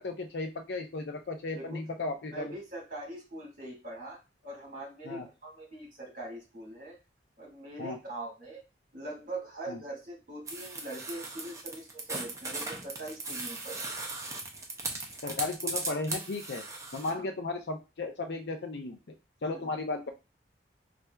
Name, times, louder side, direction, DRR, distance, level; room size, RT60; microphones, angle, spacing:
voice 1, 0.0-2.5 5.0-5.3 7.8-8.0 9.7-9.8 15.2-16.6 16.9-19.0 19.4-20.1, left 3 dB, 75° left, 6 dB, 0.6 m, -35 dB
voice 2, 1.5-1.8 2.3-7.0 7.4-8.6 8.9-13.9 17.0-17.3 19.4-19.7, right 1 dB, 50° right, -2 dB, 1.9 m, -42 dB
sound 1, 10.5-17.1, right 3 dB, 20° right, 0.5 m, -38 dB
4.3 x 2.4 x 2.3 m, 0.27 s
head